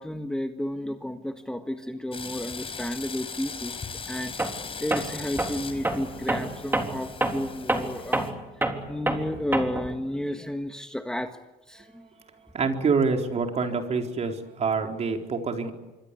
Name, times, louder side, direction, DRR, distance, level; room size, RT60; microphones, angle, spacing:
voice 1, 0.0-3.8 4.1-4.5 4.8-8.3 8.9-11.3 11.7-12.1, left 1 dB, 5° left, 6 dB, 1.6 m, -32 dB
sound 1, 2.1-8.3, left 5 dB, 35° left, 4.8 m, -39 dB
Tools, 4.4-4.6 4.9-10.0, right 2 dB, 10° right, 3.7 m, -28 dB
voice 2, 12.5-15.7, right 4 dB, 40° right, 3 dB, 4.3 m, -26 dB
26.5 x 24.0 x 8.4 m, 1.1 s
cardioid pair, 110°, 17 cm